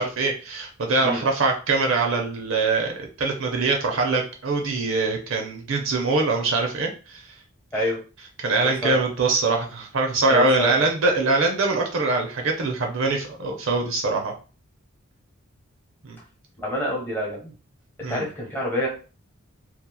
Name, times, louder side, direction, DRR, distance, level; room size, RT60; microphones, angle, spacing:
voice 1, 0.0-2.9 3.2-7.2 8.4-14.3 16.0-16.2 18.0-18.3, right 3 dB, 70° right, 2 dB, 0.6 m, -23 dB
voice 2, 8.6-9.0 10.3-10.9 16.6-17.5 18.1-18.9, equal, 10° left, -4 dB, 0.9 m, -27 dB
2.8 x 2.3 x 2.2 m, 0.36 s
head